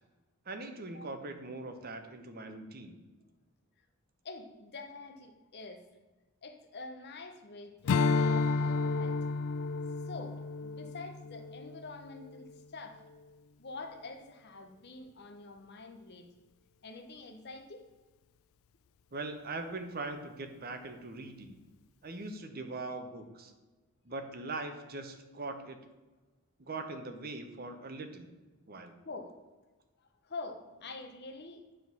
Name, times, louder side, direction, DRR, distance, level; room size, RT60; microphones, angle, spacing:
voice 1, 0.5-2.9 19.1-21.5 22.0-23.5 24.1-25.8 26.6-28.3 28.7-28.9, right 2 dB, 45° right, 7 dB, 0.8 m, -41 dB
voice 2, 4.2-5.9 6.4-9.2 10.0-13.0 13.6-16.3 16.8-17.8 29.0-29.4 30.0-31.8, left 3 dB, 50° left, 6 dB, 0.8 m, -46 dB
Strum, 7.8-12.5, left 4 dB, 65° left, 0.3 m, -31 dB
9.5 x 3.8 x 6.1 m, 1.2 s
head